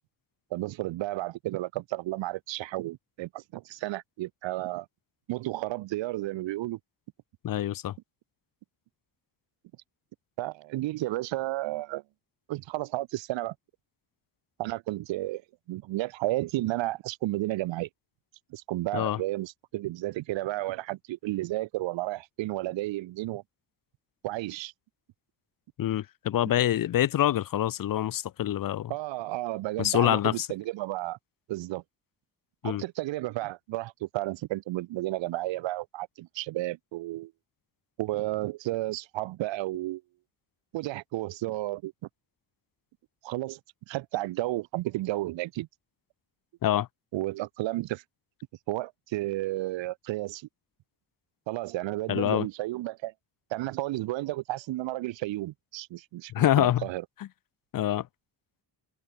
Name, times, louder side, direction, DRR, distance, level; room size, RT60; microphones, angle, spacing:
voice 1, 0.5-4.9 5.3-6.8 10.4-12.0 12.5-13.5 14.6-15.4 15.7-17.9 18.5-23.4 24.2-24.7 28.9-31.2 31.5-31.8 32.6-37.3 38.0-40.0 40.7-41.9 43.2-43.6 43.9-45.7 47.1-48.0 48.7-50.5 51.5-53.1 53.5-57.0, right 17 dB, 70° right, 0.5 m, -32 dB
voice 2, 7.4-7.9 18.9-19.2 25.8-28.9 29.8-30.5 32.6-32.8 46.6-46.9 52.1-52.5 56.3-56.8 57.7-58.1, left 12 dB, 45° left, 0.5 m, -25 dB
open air
supercardioid pair, 55°, 47 cm